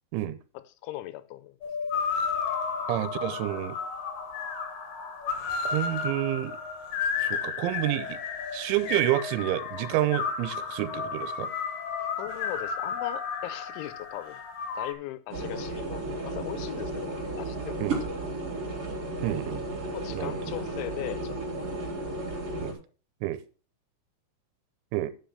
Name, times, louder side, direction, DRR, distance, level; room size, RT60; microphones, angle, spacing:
voice 1, 0.5-1.6 12.2-14.4 14.8-17.9 19.9-21.7, left 15 dB, 85° left, 3.0 m, -39 dB
sound 1, 1.6-14.9, left 6 dB, 65° left, 2.4 m, -32 dB
voice 2, 2.9-3.8 5.6-6.5 7.2-8.2 8.5-11.5 17.8-18.0 19.2-19.8 20.1-20.4 22.6-22.7 23.2-23.4 24.9-25.1, right 15 dB, 85° right, 3.2 m, -29 dB
sound 2, 15.3-22.7, right 2 dB, 40° right, 2.6 m, -34 dB
10.5 x 5.7 x 5.7 m
omnidirectional pair, 5.4 m